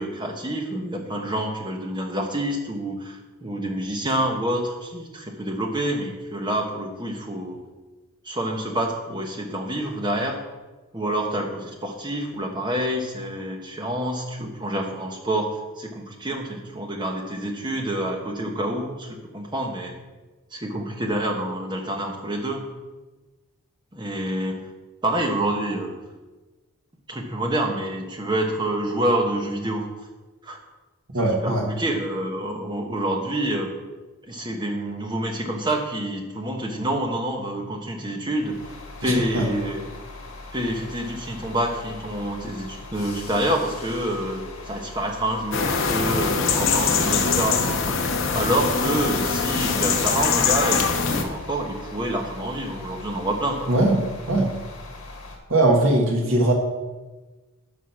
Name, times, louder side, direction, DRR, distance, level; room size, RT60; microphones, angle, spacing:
voice 1, 0.0-7.6 8.2-10.4 10.9-15.5 15.8-19.9 20.5-22.6 23.9-24.7 25.0-26.0 27.1-29.9 30.4-30.6 31.4-33.7 34.3-38.6 39.0-39.9 40.5-47.6 48.3-53.7, right 1 dB, 20° right, 2 dB, 1.1 m, -27 dB
voice 2, 31.1-31.6 39.0-39.5 53.7-54.5 55.5-56.5, right 1 dB, 70° right, 1 dB, 1.8 m, -20 dB
sound 1, 38.4-55.4, left 2 dB, 80° left, 1.7 m, -41 dB
sound 2, 45.5-51.2, left 5 dB, 65° left, 1.0 m, -23 dB
11.5 x 4.0 x 6.0 m, 1.2 s
head